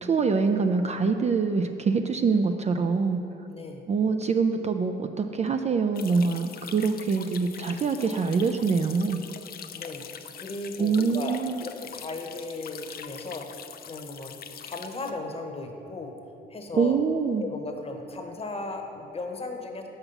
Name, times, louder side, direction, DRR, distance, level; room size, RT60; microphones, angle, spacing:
voice 1, 0.0-3.2 3.9-9.2 10.8-11.7 16.7-17.5, right 5 dB, 35° right, 7 dB, 0.4 m, -25 dB
voice 2, 3.5-3.8 9.7-10.1 10.3-14.3 14.6-16.1 16.5-17.0 17.4-19.9, left 2 dB, 30° left, 4 dB, 1.0 m, -36 dB
sound 1, 5.9-15.1, left 8 dB, 50° left, 0.5 m, -43 dB
5.8 x 5.6 x 6.9 m, 3.0 s
cardioid pair, 90°, 20 cm